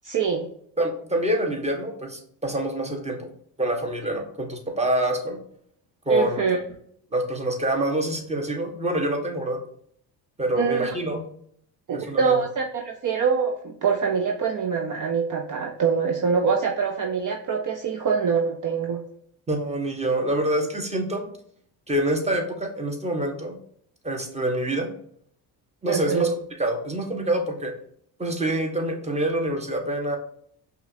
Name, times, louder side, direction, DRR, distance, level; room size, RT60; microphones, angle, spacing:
voice 1, 0.0-0.5 6.1-6.6 10.6-10.9 11.9-19.0 25.9-26.3, right 6 dB, 40° right, 3 dB, 0.7 m, -24 dB
voice 2, 0.8-3.3 3.6-5.4 6.1-6.4 7.1-9.6 10.4-11.2 11.9-12.4 19.5-21.3 21.9-23.6 24.0-24.9 25.8-26.3 26.6-27.7 28.2-30.2, right 1 dB, 15° right, 2 dB, 1.2 m, -26 dB
5.5 x 2.6 x 2.7 m, 0.64 s
hypercardioid pair, 55°, 49 cm